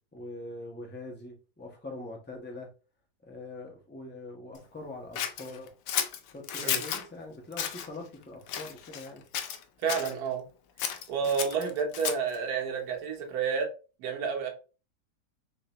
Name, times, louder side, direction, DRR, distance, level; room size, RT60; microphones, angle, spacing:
voice 1, 0.1-2.7 3.2-5.7 6.3-9.2 11.2-11.5, left 2 dB, 15° left, 1 dB, 0.4 m, -43 dB
Scissors, 5.2-7.0 7.5-7.9 8.5-9.1 9.3-10.1 10.8-12.4, left 9 dB, 70° left, 0.9 m, -33 dB
voice 2, 9.8-10.4 11.1-13.7 14.0-14.5, right 6 dB, 70° right, 2 dB, 1.4 m, -30 dB
3.8 x 3.3 x 2.8 m, 0.34 s
omnidirectional pair, 1.8 m